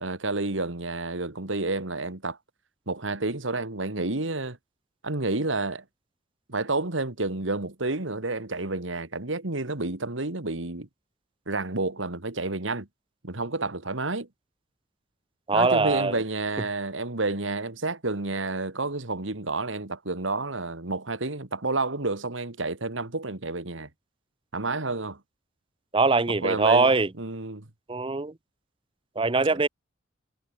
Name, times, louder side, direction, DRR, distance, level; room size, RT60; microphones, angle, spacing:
voice 1, 0.0-2.4 2.9-4.6 5.0-5.8 6.5-10.9 11.5-12.9 13.2-14.3 15.5-23.9 24.5-25.2 26.4-26.9 27.2-27.7, right 2 dB, 85° right, 2.3 m, -30 dB
voice 2, 15.5-16.2 25.9-27.1 27.9-28.3 29.2-29.7, right 3 dB, 25° right, 0.8 m, -22 dB
head